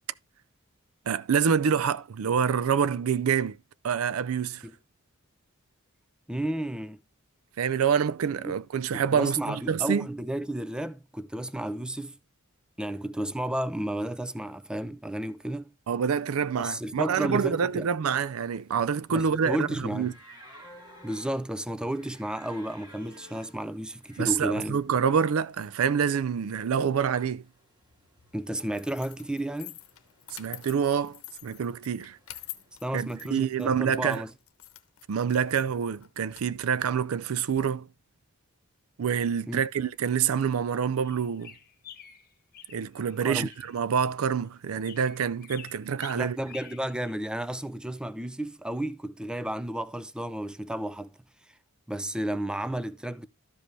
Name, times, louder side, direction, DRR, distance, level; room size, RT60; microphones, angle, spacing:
voice 1, 1.1-3.6 3.8-4.6 7.6-10.1 15.9-20.1 24.2-27.4 30.4-32.2 32.9-34.2 35.1-37.9 39.0-41.5 42.7-46.4, right 7 dB, 80° right, 0.4 m, -27 dB
voice 2, 6.3-7.0 8.4-8.5 8.9-12.2 12.8-15.7 16.6-17.9 19.1-20.1 21.0-24.8 28.3-29.8 32.8-34.3 39.5-39.6 43.2-43.5 46.1-51.1 51.9-53.3, right 1 dB, 5° right, 0.5 m, -32 dB
sound 1, 18.6-34.0, equal, 20° right, 2.1 m, -56 dB
sound 2, 28.7-37.6, left 14 dB, 85° left, 0.9 m, -48 dB
sound 3, 41.0-43.8 44.8-47.1, left 8 dB, 45° left, 1.0 m, -49 dB
13.0 x 5.2 x 3.2 m
head